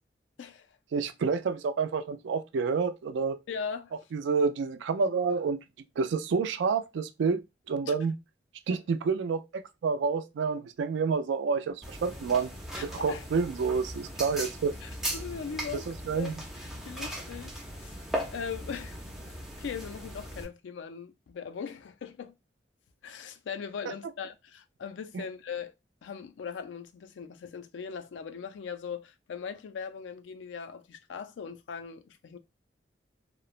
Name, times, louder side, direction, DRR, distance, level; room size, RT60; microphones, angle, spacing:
voice 1, 0.9-3.4 4.1-5.6 6.0-7.4 7.7-8.1 8.7-9.4 9.8-12.5 13.0-14.7 16.1-16.4, right 5 dB, 80° right, 0.3 m, -28 dB
voice 2, 3.5-3.9 7.8-7.9 8.7-8.8 12.7-13.2 14.8-15.9 16.1-18.0 18.3-19.0 19.3-22.3 23.0-25.7 26.0-32.4, left 6 dB, 85° left, 0.4 m, -40 dB
sound 1, 11.8-20.4, equal, ahead, 0.4 m, -38 dB
3.0 x 2.0 x 2.4 m
head